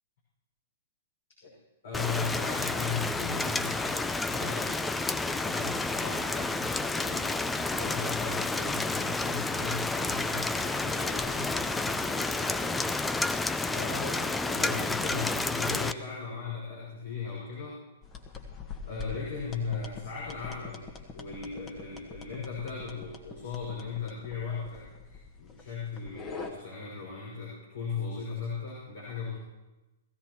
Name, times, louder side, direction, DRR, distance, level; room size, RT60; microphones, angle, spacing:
voice 1, 1.8-4.8 5.1-17.8 18.8-29.4, left 5 dB, 60° left, -6 dB, 5.8 m, -38 dB
Rain, 1.9-15.9, left 3 dB, 10° left, 0.5 m, -30 dB
sound 1, 18.0-26.5, left 5 dB, 25° left, 1.7 m, -44 dB
20.5 x 15.5 x 3.1 m, 1.1 s
figure-of-eight pair, 110°, 0 cm